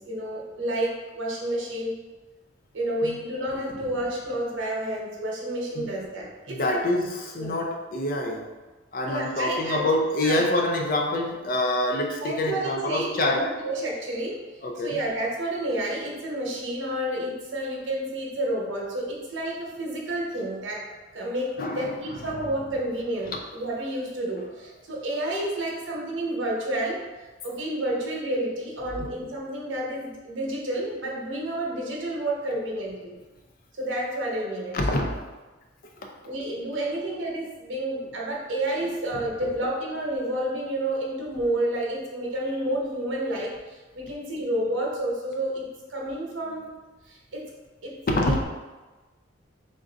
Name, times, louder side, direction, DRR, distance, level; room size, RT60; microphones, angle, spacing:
voice 1, 0.0-1.9 2.7-6.9 7.3-7.6 9.0-9.9 10.2-10.4 12.2-14.3 14.8-20.8 21.1-27.0 27.4-33.1 33.8-35.1 36.2-43.5 43.9-46.8 47.1-47.5 47.8-48.3, right 1 dB, 75° right, -2 dB, 0.9 m, -30 dB
voice 2, 6.5-8.5 8.9-13.5 14.6-15.0 21.6-22.0 22.3-22.4 29.0-29.1 34.7-35.2 39.1-39.2 48.1-48.4, left 1 dB, 45° left, 1 dB, 0.5 m, -26 dB
3.6 x 2.5 x 3.9 m, 1.2 s
head